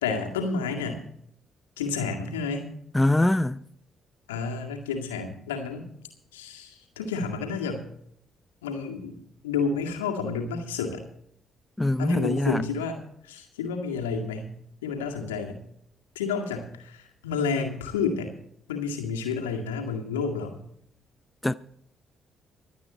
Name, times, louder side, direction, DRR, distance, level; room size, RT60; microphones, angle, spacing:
voice 1, 0.0-1.0 1.8-2.7 4.3-5.9 6.3-7.8 8.6-9.1 9.4-11.0 12.0-13.0 13.3-14.5 14.8-15.6 16.2-18.3 18.7-20.6, left 5 dB, 80° left, 2.0 m, -30 dB
voice 2, 2.9-3.6 11.8-12.6 21.4-21.5, left 1 dB, 15° left, 0.5 m, -23 dB
24.5 x 8.5 x 4.1 m
figure-of-eight pair, 40°, 0 cm